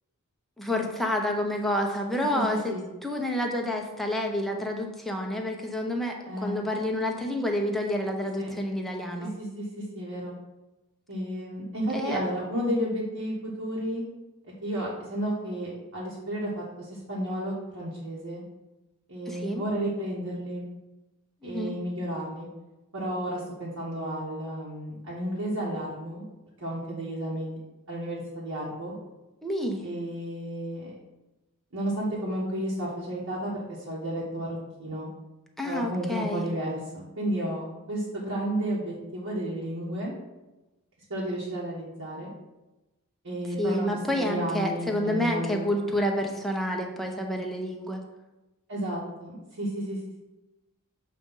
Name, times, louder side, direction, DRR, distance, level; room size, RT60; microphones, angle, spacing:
voice 1, 0.6-2.7 3.0-9.3 11.9-12.2 19.3-19.6 21.4-21.7 29.4-29.8 35.6-36.5 43.6-48.0, left 1 dB, ahead, 1 dB, 0.7 m, -29 dB
voice 2, 2.3-2.9 6.2-6.6 8.4-8.5 9.2-10.3 11.1-14.0 14.6-18.4 19.1-20.6 21.4-22.5 22.9-26.2 26.6-27.6 27.9-28.9 29.8-30.9 31.7-35.1 35.6-40.1 41.1-42.3 43.2-43.9 44.1-45.8 48.7-50.0, right 1 dB, 65° right, -6 dB, 1.2 m, -32 dB
7.4 x 2.6 x 5.4 m, 1.1 s
head